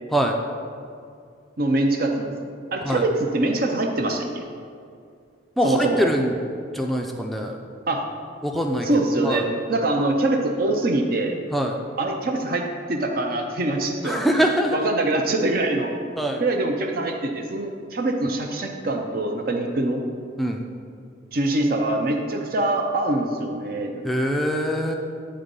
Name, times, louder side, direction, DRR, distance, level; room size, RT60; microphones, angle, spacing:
voice 1, 1.6-2.3 2.7-4.4 5.6-6.1 7.9-8.0 8.8-11.4 12.0-14.2 14.7-15.9 16.4-20.0 21.3-24.0, right 2 dB, 50° right, 2 dB, 0.6 m, -24 dB
voice 2, 5.6-6.3 6.7-7.6 8.4-8.9 9.2-9.4 11.5-11.8 14.0-14.8 16.2-16.4 20.4-20.6 24.0-24.9, equal, ahead, 1 dB, 0.4 m, -23 dB
8.8 x 3.9 x 5.2 m, 2.3 s
head